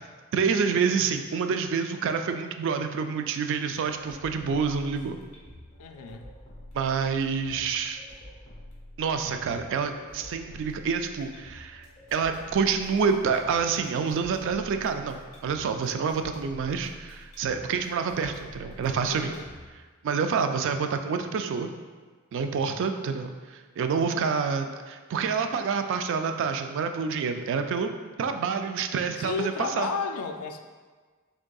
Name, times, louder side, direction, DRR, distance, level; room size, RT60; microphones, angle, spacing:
voice 1, 0.3-5.2 6.7-8.0 9.0-19.3 20.0-21.7 22.3-29.9, right 5 dB, 60° right, 7 dB, 0.3 m, -28 dB
sound 1, 3.7-19.7, left 1 dB, 35° left, 1.3 m, -48 dB
voice 2, 5.8-6.3 19.1-19.5 29.2-30.6, left 5 dB, 85° left, 6 dB, 0.4 m, -32 dB
5.1 x 3.7 x 2.3 m, 1.4 s
head